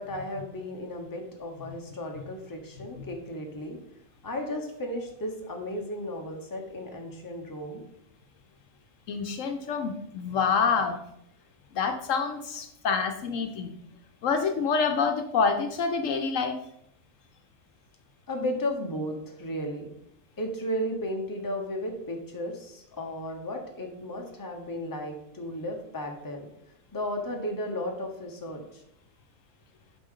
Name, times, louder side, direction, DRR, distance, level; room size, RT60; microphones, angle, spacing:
voice 1, 0.0-3.8 4.2-7.8 18.3-19.9 20.4-26.5 26.9-28.6, left 1 dB, 15° left, 2 dB, 0.9 m, -34 dB
voice 2, 9.1-11.0 11.7-13.8 14.2-16.6, left 5 dB, 70° left, 6 dB, 1.0 m, -27 dB
8.3 x 5.1 x 3.7 m, 0.76 s
omnidirectional pair, 1.4 m